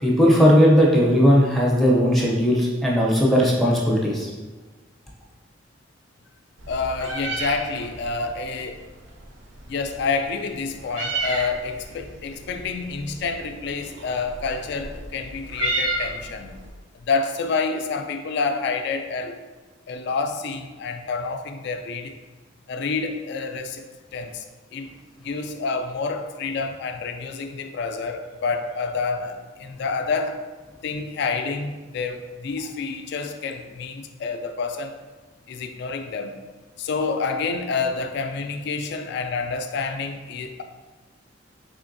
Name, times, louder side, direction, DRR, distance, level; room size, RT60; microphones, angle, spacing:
voice 1, 0.0-4.3, equal, ahead, -4 dB, 0.5 m, -17 dB
Meow, 6.6-16.7, right 2 dB, 70° right, 0.6 m, -33 dB
voice 2, 6.7-8.8 9.7-16.5 16.9-19.4 19.9-22.2 22.7-23.8 24.1-24.4 24.7-24.9 25.2-30.4 30.8-35.0 35.5-36.3 36.8-40.6, left 4 dB, 60° left, 6 dB, 0.3 m, -28 dB
3.5 x 3.3 x 2.5 m, 1.3 s
head